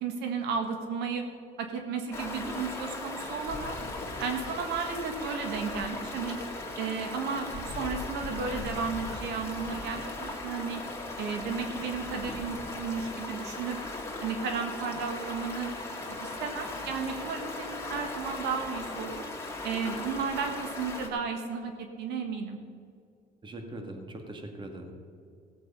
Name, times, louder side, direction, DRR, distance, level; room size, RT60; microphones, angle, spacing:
voice 1, 0.0-1.2 1.6-3.8 4.2-6.4 6.8-10.8 11.2-13.8 14.2-15.7 16.2-19.2 19.6-22.6, right 5 dB, 85° right, 4 dB, 1.6 m, -33 dB
Stream, 2.1-21.1, left 2 dB, 15° left, 2.4 m, -38 dB
voice 2, 23.4-24.9, right 1 dB, 30° right, 4 dB, 1.9 m, -41 dB
16.5 x 7.9 x 5.6 m, 2.3 s
cardioid pair, 110°, 17 cm